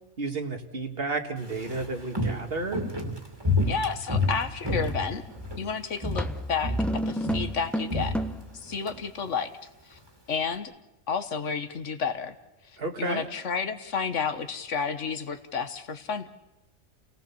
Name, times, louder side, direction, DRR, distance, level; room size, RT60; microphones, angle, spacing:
voice 1, 0.2-2.8 12.8-13.2, right 3 dB, 50° right, 6 dB, 1.9 m, -32 dB
Walk footsteps, 1.4-5.7 6.0-6.4 6.6-9.0 9.2-9.3, left 2 dB, 20° right, 2.4 m, -29 dB
voice 2, 3.7-5.2 5.6-8.1 8.5-9.5 9.9-10.0 10.3-10.7 11.1-12.3 13.0-16.3, left 6 dB, 80° left, 10 dB, 1.6 m, -31 dB
sound 1, 5.3-5.5 6.2-8.6, equal, ahead, 0.6 m, -31 dB
29.0 x 18.0 x 7.0 m, 0.97 s
omnidirectional pair, 1.2 m